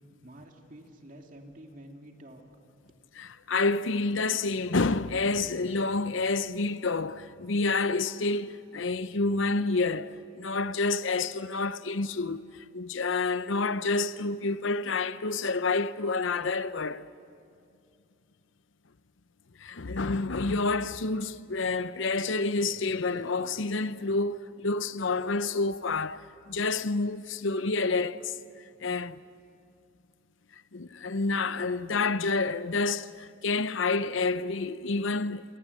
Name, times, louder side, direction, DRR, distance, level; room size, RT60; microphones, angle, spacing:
voice 1, 0.2-2.4, right 1 dB, 40° right, 2.6 m, -49 dB
voice 2, 3.2-17.1 19.6-28.4 28.8-29.2 30.7-35.4, left 3 dB, 80° left, 0.8 m, -29 dB
28.5 x 24.0 x 8.5 m
head